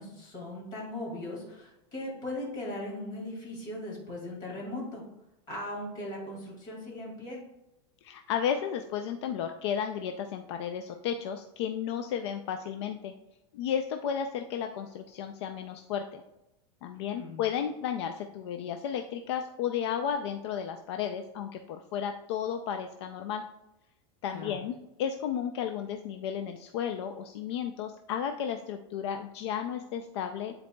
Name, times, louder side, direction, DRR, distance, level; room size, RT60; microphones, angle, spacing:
voice 1, 0.0-5.0 5.5-7.4 17.1-17.4 24.3-24.6, left 1 dB, 25° left, -3 dB, 2.3 m, -38 dB
voice 2, 8.0-13.1 13.5-16.2 16.8-23.5 24.2-30.5, left 8 dB, 65° left, 6 dB, 0.5 m, -33 dB
10.5 x 4.1 x 2.2 m, 0.92 s
supercardioid pair, 170°, 15 cm